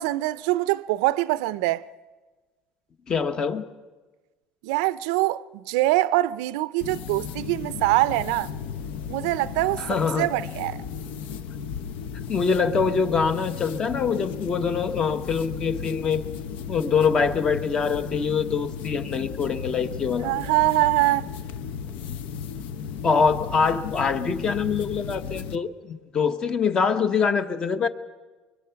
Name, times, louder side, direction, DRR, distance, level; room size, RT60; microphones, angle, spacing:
voice 1, 0.0-1.9 4.6-8.5 9.1-10.8 20.2-21.3, right 18 dB, 85° right, 0.6 m, -24 dB
voice 2, 3.1-3.6 9.9-10.3 12.3-16.2 16.7-20.3 23.0-27.9, left 5 dB, 25° left, 1.1 m, -24 dB
sound 1, 6.8-25.6, left 7 dB, 60° left, 0.9 m, -35 dB
24.0 x 23.5 x 5.8 m
cardioid pair, 150°, 3 cm